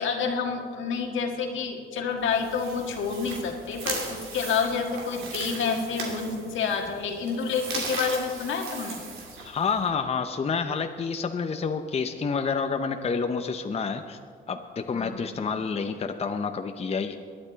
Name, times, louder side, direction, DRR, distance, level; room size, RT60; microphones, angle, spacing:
voice 1, 0.0-9.0 14.9-15.2, left 5 dB, 75° left, 3 dB, 1.7 m, -29 dB
sound 1, 2.2-9.9, right 3 dB, 90° right, 2.8 m, -38 dB
voice 2, 9.4-14.2 14.5-17.2, left 5 dB, 30° left, 7 dB, 0.7 m, -29 dB
22.0 x 9.7 x 4.0 m, 2.1 s
cardioid pair, 90°, 20 cm